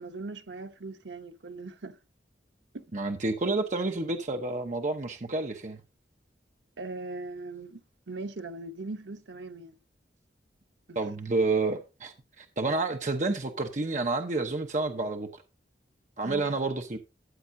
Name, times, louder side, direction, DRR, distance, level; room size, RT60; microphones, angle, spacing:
voice 1, 0.0-2.0 2.7-2.9 6.8-7.8 8.1-9.8 10.9-11.0 16.2-16.6, right 3 dB, 80° right, 0.9 m, -39 dB
voice 2, 2.9-5.8 10.9-15.3 16.2-17.0, right 3 dB, 40° right, 0.8 m, -29 dB
13.0 x 8.5 x 2.7 m
head